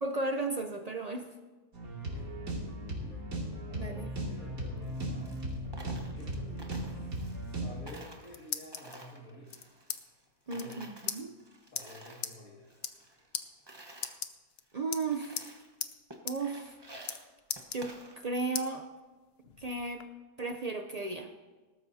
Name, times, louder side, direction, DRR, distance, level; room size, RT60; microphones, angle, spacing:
voice 1, 0.0-1.3 3.7-4.1 10.5-11.3 14.7-15.6 16.2-17.1 17.7-18.9 19.6-20.0 20.4-21.3, right 3 dB, 50° right, 6 dB, 0.4 m, -35 dB
sound 1, 1.7-7.8, right 1 dB, 75° right, 2.9 m, -37 dB
voice 2, 2.0-2.4 3.0-3.4 3.7-5.4 6.1-9.6 10.5-10.8 11.6-13.0, left 1 dB, 70° left, -4 dB, 2.5 m, -51 dB
Coin (dropping), 4.8-7.6 7.9-10.2 10.5-12.3 12.6-14.2 14.7-14.8 15.1-15.7 16.1-18.5, right 1 dB, 20° right, 1.1 m, -52 dB
sound 2, 8.1-9.0 9.5-10.0 10.3-10.4 10.6-10.8 11.1-11.2 11.8-11.9 12.2-12.4 12.7-13.1 13.3-13.5 14.0-14.6 14.9-15.5 15.8-15.9 16.3-16.4 16.7-17.2 17.5-18.2 18.6-18.7 19.2-20.1, left 8 dB, 55° left, 0.8 m, -38 dB
19.5 x 12.5 x 2.7 m, 1.3 s
omnidirectional pair, 1.5 m